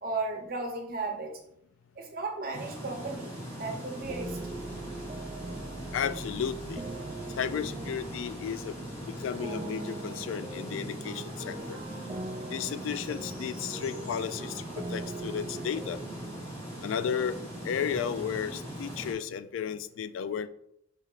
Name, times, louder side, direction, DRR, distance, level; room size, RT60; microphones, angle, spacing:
voice 1, 0.0-1.4 2.0-4.7, right 3 dB, 50° right, 2 dB, 0.8 m, -35 dB
sound 1, 2.5-19.1, equal, 30° left, 1.8 m, -41 dB
sound 2, 4.0-16.4, right 2 dB, 25° right, 0.3 m, -42 dB
voice 2, 5.9-6.8 7.4-8.8 9.2-11.8 12.5-16.0 16.8-17.4 17.6-20.5, left 7 dB, 85° left, 13 dB, 0.3 m, -33 dB
4.8 x 4.2 x 2.4 m, 0.74 s
head